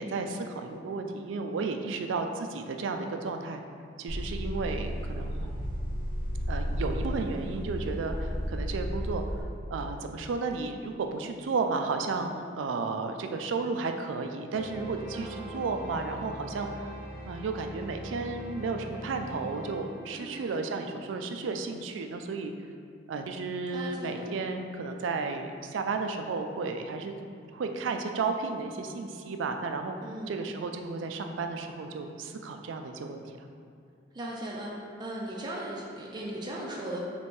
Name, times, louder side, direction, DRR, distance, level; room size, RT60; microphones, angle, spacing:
voice 1, 0.0-3.6 4.0-5.5 6.5-9.2 9.7-16.9 17.3-22.5 23.1-27.2 27.5-30.0 30.3-33.2, right 4 dB, 85° right, 5 dB, 0.4 m, -33 dB
sound 1, 4.1-9.4, equal, 65° left, 1.2 m, -33 dB
sound 2, 14.5-20.8, equal, 5° right, 0.9 m, -42 dB
voice 2, 15.1-15.6 20.1-20.8 23.7-24.3 30.0-30.4 34.1-34.7 35.0-37.0, right 1 dB, 25° right, -4 dB, 0.4 m, -38 dB
3.3 x 3.1 x 4.3 m, 2.4 s
head